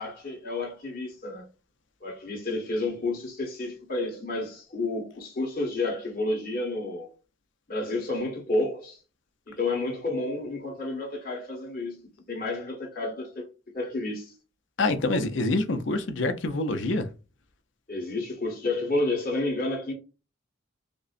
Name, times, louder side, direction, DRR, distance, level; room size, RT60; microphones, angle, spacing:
voice 1, 0.0-1.5 2.0-7.1 7.7-9.0 9.5-12.0 12.3-13.4 13.7-14.3 17.9-19.9, left 2 dB, 45° left, 1.6 m, -30 dB
voice 2, 14.8-17.1, left 2 dB, 65° left, 0.6 m, -26 dB
5.1 x 2.1 x 2.5 m
head